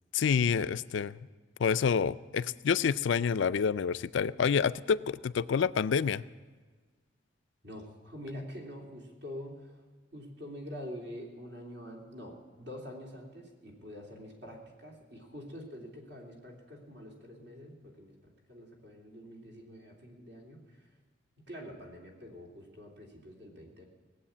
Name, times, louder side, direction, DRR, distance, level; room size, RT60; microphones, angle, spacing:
voice 1, 0.1-1.2 1.6-6.2, left 6 dB, 75° left, 14 dB, 0.4 m, -28 dB
voice 2, 7.6-9.8 10.1-20.7 21.4-23.9, equal, 65° right, -1 dB, 3.0 m, -46 dB
18.5 x 8.0 x 8.5 m, 1.4 s
head